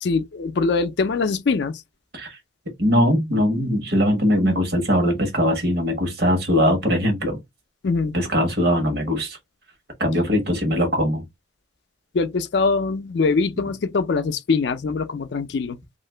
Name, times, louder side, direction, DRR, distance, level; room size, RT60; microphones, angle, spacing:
voice 1, 0.0-1.8 7.8-8.2 12.1-15.8, left 4 dB, 60° left, 0.4 m, -23 dB
voice 2, 2.8-7.4 8.1-9.4 10.0-11.2, equal, 55° right, 1.1 m, -21 dB
2.8 x 2.5 x 3.2 m
head